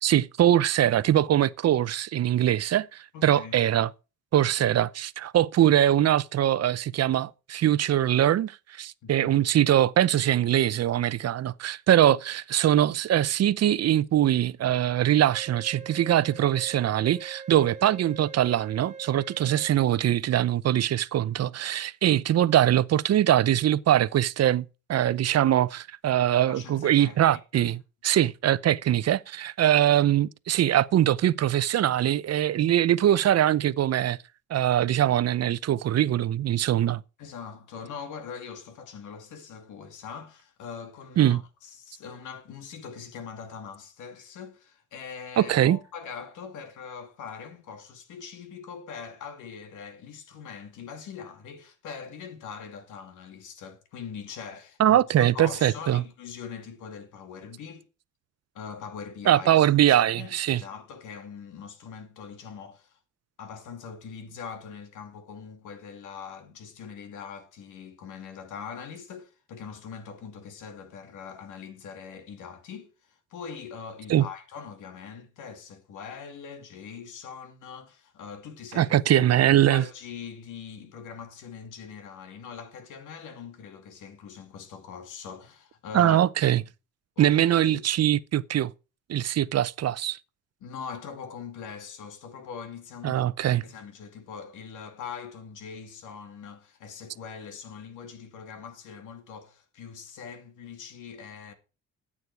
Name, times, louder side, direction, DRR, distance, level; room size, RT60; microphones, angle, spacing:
voice 1, 0.0-3.9 4.3-34.2 34.5-37.0 41.2-41.4 45.4-45.8 54.8-56.0 59.3-60.6 74.1-74.3 78.7-79.9 85.9-86.6 87.2-88.7 89.1-90.2 93.0-93.6, right 11 dB, 55° right, 0.7 m, -22 dB
voice 2, 3.1-3.7 4.7-4.8 9.0-9.4 26.4-27.7 37.2-57.9 58.5-63.0 63.4-86.2 86.6-86.7 87.2-87.9 90.6-93.3 93.6-101.5, left 6 dB, 85° left, 2.5 m, -42 dB
Wind instrument woodwind instrument, 15.3-19.7, right 6 dB, 25° right, 1.7 m, -43 dB
14.0 x 8.6 x 4.7 m
cardioid pair, 90°, 30 cm